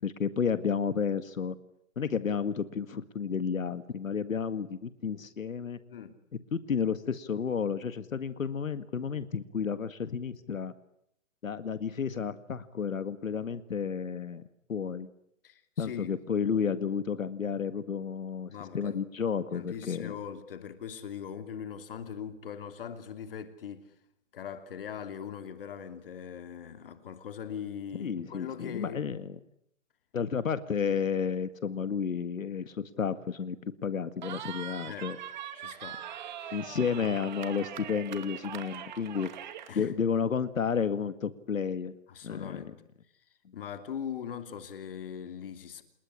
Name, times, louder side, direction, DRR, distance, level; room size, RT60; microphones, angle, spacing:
voice 1, 0.0-1.6 2.0-5.8 6.5-10.7 11.4-14.4 14.7-15.1 15.8-20.1 28.0-29.4 30.1-33.6 33.8-35.2 36.5-39.3 39.8-41.9 42.2-42.6, left 6 dB, 90° left, 1.9 m, -31 dB
voice 2, 15.4-16.2 18.5-19.0 19.5-23.9 24.3-29.2 34.8-35.1 35.6-36.0 36.4-36.6 39.7-39.9 42.1-42.7 43.5-45.8, left 8 dB, 45° left, 3.0 m, -41 dB
Cheering, 34.2-39.7, right 10 dB, 35° right, 2.4 m, -42 dB
29.0 x 19.5 x 10.0 m
hypercardioid pair, 165°, 39 cm